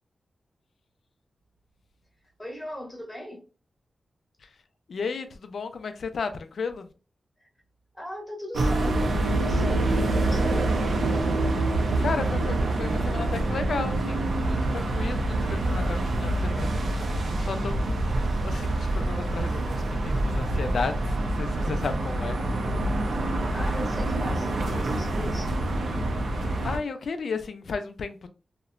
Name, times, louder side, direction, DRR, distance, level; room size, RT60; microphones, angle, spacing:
voice 1, 2.4-3.4 7.4-7.5 7.9-10.7 23.5-25.6, equal, 10° left, 0.9 m, -39 dB
voice 2, 4.9-6.9 12.0-22.4 26.3-28.3, left 5 dB, 70° left, 0.4 m, -34 dB
sound 1, 8.5-26.8, right 2 dB, 75° right, 0.5 m, -26 dB
2.8 x 2.1 x 2.4 m
wide cardioid pair, 110°, 0 cm